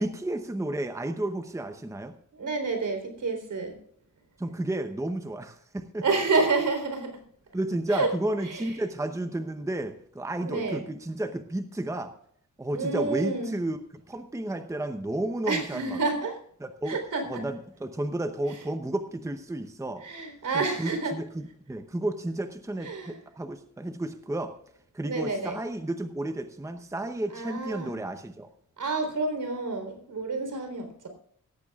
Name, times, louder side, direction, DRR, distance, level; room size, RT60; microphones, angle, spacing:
voice 1, 0.0-2.1 4.4-6.0 7.5-12.1 12.6-13.8 14.1-16.0 16.6-17.0 17.2-20.0 20.5-24.5 24.9-28.5, right 1 dB, 10° right, 8 dB, 0.8 m, -32 dB
voice 2, 2.3-3.8 6.0-7.2 7.9-8.1 8.4-8.8 10.4-10.9 12.7-13.5 15.5-16.4 16.9-17.4 20.0-21.1 22.8-23.2 25.0-25.6 27.3-27.9 28.8-31.1, right 3 dB, 75° right, 6 dB, 3.8 m, -29 dB
17.0 x 14.5 x 2.4 m, 0.64 s
wide cardioid pair, 140°, 31 cm